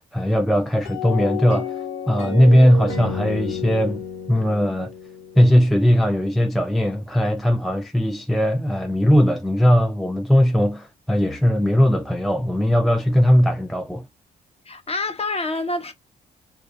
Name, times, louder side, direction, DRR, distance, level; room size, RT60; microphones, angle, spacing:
voice 1, 0.1-1.8 2.1-4.9 5.4-14.1, equal, ahead, 0.4 m, -19 dB
sound 1, 0.8-6.0, left 5 dB, 75° left, 0.8 m, -31 dB
voice 2, 14.7-15.9, left 2 dB, 30° left, 0.8 m, -27 dB
2.3 x 2.3 x 2.3 m
supercardioid pair, 55°, 21 cm